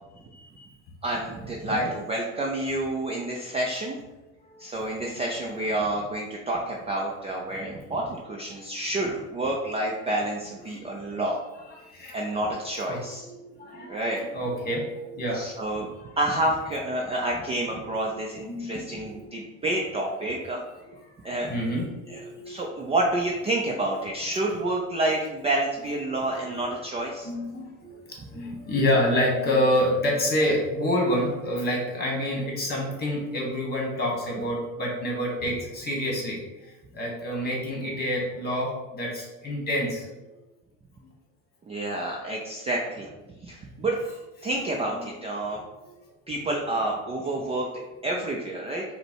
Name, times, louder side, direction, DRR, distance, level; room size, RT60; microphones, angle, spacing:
voice 1, 0.3-0.7 1.7-1.9 4.4-4.6 8.8-8.9 11.7-12.2 12.9-15.4 17.9-18.1 18.5-19.2 21.4-22.7 26.4-26.7 27.2-40.1 41.0-41.1 44.4-44.5 44.9-45.0 45.8-45.9, left 1 dB, 25° left, -1 dB, 1.4 m, -28 dB
voice 2, 1.0-4.0 4.6-11.4 12.1-13.2 13.9-14.2 15.3-15.9 16.2-20.6 21.2-21.5 22.1-22.2 22.5-27.3 41.7-43.1 43.4-44.0 44.4-45.6 46.3-47.7 48.0-48.8, right 1 dB, 20° right, -1 dB, 0.4 m, -29 dB
5.1 x 2.2 x 4.4 m, 1.1 s
cardioid pair, 135°, 35 cm